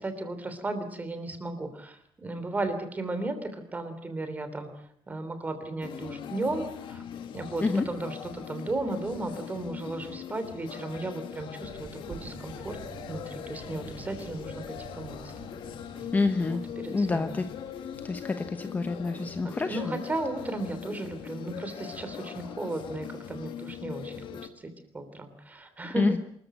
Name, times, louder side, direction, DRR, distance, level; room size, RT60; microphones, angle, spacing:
voice 1, 0.0-4.7 5.1-7.0 7.3-12.8 13.1-15.3 16.0-16.1 16.5-17.3 19.2-26.1, right 2 dB, 20° right, 9 dB, 3.2 m, -35 dB
sound 1, 5.8-24.5, left 9 dB, 65° left, 1.9 m, -41 dB
Thunder, 11.6-18.3, right 7 dB, 40° right, 1.8 m, -48 dB
voice 2, 16.1-16.6 16.9-17.4 18.0-20.0 26.0-26.2, left 3 dB, 20° left, 8 dB, 1.0 m, -27 dB
25.5 x 14.5 x 9.1 m, 0.69 s
cardioid pair, 165°, 9 cm